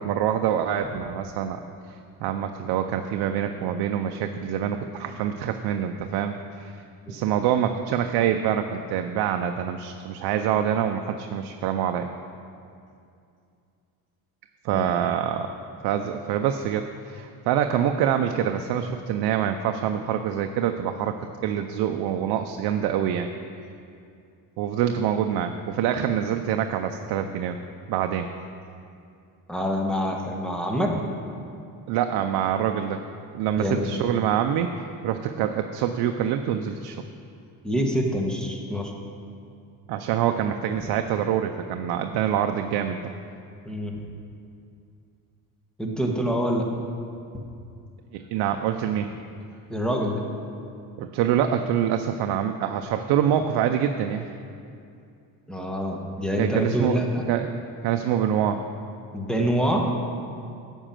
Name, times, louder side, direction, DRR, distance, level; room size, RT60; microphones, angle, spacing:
voice 1, 0.0-1.6 1.9-6.7 7.1-12.1 14.6-15.5 15.8-21.2 21.4-23.3 24.6-27.6 27.9-28.3 31.9-33.0 33.3-34.7 35.0-37.0 39.9-43.0 48.1-49.1 51.0-54.3 56.4-57.0 57.3-57.6 57.8-58.6, right 9 dB, 80° right, 6 dB, 0.6 m, -25 dB
voice 2, 29.5-31.0 33.6-33.9 37.6-38.9 43.6-43.9 45.8-46.7 49.7-50.2 55.5-57.2 59.1-59.9, equal, ahead, 1 dB, 1.3 m, -26 dB
9.9 x 5.5 x 7.5 m, 2.5 s
cardioid pair, 110°, 38 cm